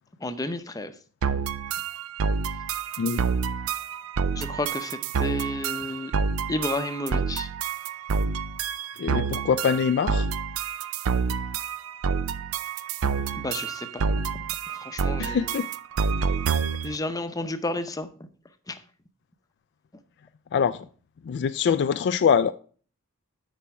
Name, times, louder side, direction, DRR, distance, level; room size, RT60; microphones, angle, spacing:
voice 1, 0.2-0.9 4.4-6.1 6.5-7.5 13.3-14.1 14.8-15.5 16.8-18.3 18.7-18.8, left 2 dB, 15° left, 0.7 m, -31 dB
sound 1, 1.2-17.0, right 6 dB, 80° right, 0.5 m, -28 dB
voice 2, 9.0-10.3 15.2-15.7 20.5-20.8 21.2-22.5, left 7 dB, 55° left, 0.3 m, -23 dB
10.0 x 4.3 x 4.7 m
head